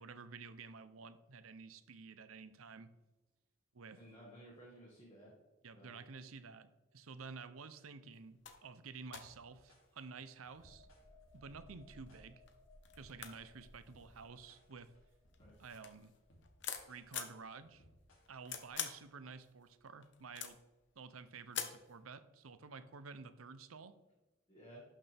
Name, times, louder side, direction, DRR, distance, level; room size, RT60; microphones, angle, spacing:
voice 1, 0.0-2.9 3.7-4.0 5.6-6.7 6.9-10.9 11.3-12.4 13.0-14.9 15.6-16.1 16.9-17.8 18.3-20.6 21.0-23.9, right 4 dB, 90° right, 12 dB, 0.7 m, -51 dB
voice 2, 3.9-5.3 5.7-6.0 15.4-15.5 24.5-24.8, right 1 dB, 20° left, -5 dB, 1.9 m, -56 dB
sound 1, 8.2-8.3 8.4-8.6 9.1-10.0 10.7-11.3 12.1-12.2 12.5-12.6 12.8-14.8 15.3-17.4 18.0-19.1 19.4-20.8 21.5-21.9, left 8 dB, 60° left, 1.0 m, -45 dB
sound 2, 9.1-18.7, equal, 80° left, 2.9 m, -67 dB
sound 3, 10.5-18.0 18.3-18.5, left 1 dB, 15° right, 2.1 m, -64 dB
11.5 x 6.5 x 3.5 m, 1.1 s
head